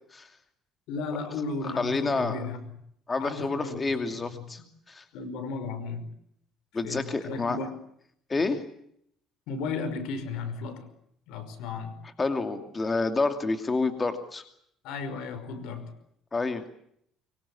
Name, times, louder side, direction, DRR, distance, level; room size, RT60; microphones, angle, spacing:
voice 1, 0.9-2.6 3.2-4.4 5.1-6.0 6.8-7.7 8.3-8.4 9.5-10.9 11.3-12.0 14.8-15.9, left 4 dB, 80° left, 12 dB, 5.5 m, -35 dB
voice 2, 1.8-2.4 3.1-4.6 4.9-5.0 6.7-7.6 8.3-8.6 12.2-14.4 16.3-16.6, left 3 dB, 25° left, 7 dB, 2.6 m, -28 dB
25.0 x 23.5 x 8.6 m, 0.70 s
cardioid pair, 110°, 0 cm